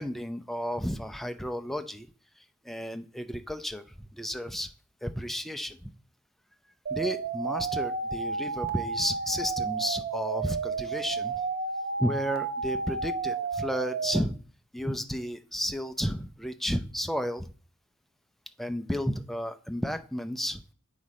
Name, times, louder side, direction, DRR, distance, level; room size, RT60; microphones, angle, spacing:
voice 1, 0.0-2.1 2.4-4.7 5.0-5.9 6.9-11.4 12.0-14.4 14.7-17.5 18.6-20.6, equal, ahead, 8 dB, 0.5 m, -32 dB
sound 1, 6.9-14.2, right 4 dB, 45° right, 0.7 m, -32 dB
8.0 x 4.9 x 4.2 m, 0.39 s
head